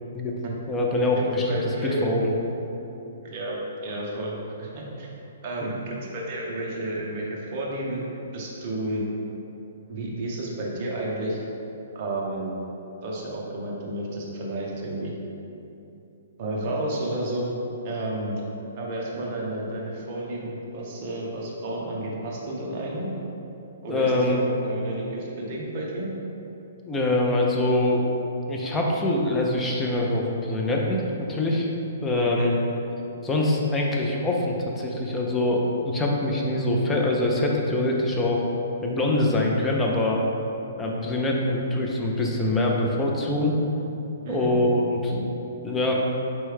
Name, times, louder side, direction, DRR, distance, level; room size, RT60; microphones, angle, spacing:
voice 1, 0.7-1.6 1.8-2.3 5.6-5.7 23.9-24.4 26.8-28.1 28.5-31.7 32.0-32.6 33.2-38.5 38.8-40.2 40.8-43.6 44.3-45.3 45.6-45.9, left 1 dB, 10° left, -2 dB, 0.3 m, -24 dB
voice 2, 1.5-2.0 3.2-5.1 5.4-8.0 8.3-9.1 9.9-11.4 11.9-12.5 13.0-15.2 16.4-17.5 17.8-18.4 18.8-23.1 23.8-26.1 32.2-32.5 44.2-44.6, right 1 dB, 30° right, -3 dB, 0.6 m, -31 dB
4.4 x 3.1 x 3.2 m, 2.9 s
hypercardioid pair, 175°, 0 cm